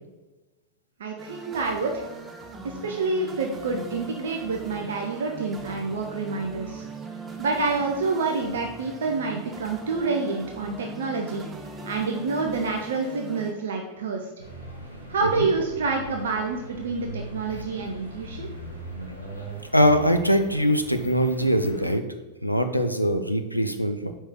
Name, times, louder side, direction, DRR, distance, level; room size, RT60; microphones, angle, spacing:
voice 1, 1.0-2.0 2.6-6.8 7.4-11.5 11.8-14.3 15.1-18.5, right 4 dB, 60° right, 2 dB, 0.6 m, -28 dB
sound 1, 1.2-13.5, right 3 dB, 20° right, 0.7 m, -40 dB
sound 2, 14.4-21.9, right 1 dB, 85° right, 1.3 m, -40 dB
voice 2, 19.7-22.0 22.4-24.1, equal, 90° left, 7 dB, 0.5 m, -22 dB
5.0 x 4.5 x 4.5 m, 1.1 s
figure-of-eight pair, 90°, 0 cm